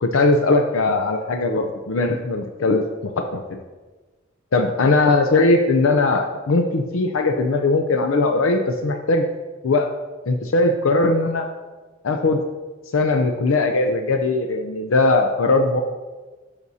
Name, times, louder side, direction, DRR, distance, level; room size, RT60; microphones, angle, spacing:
voice 1, 0.0-3.6 4.5-9.3 9.6-9.9 10.3-11.5 12.0-12.4 12.9-15.8, left 3 dB, 85° left, 5 dB, 0.5 m, -19 dB
10.5 x 6.9 x 2.7 m, 1.3 s
head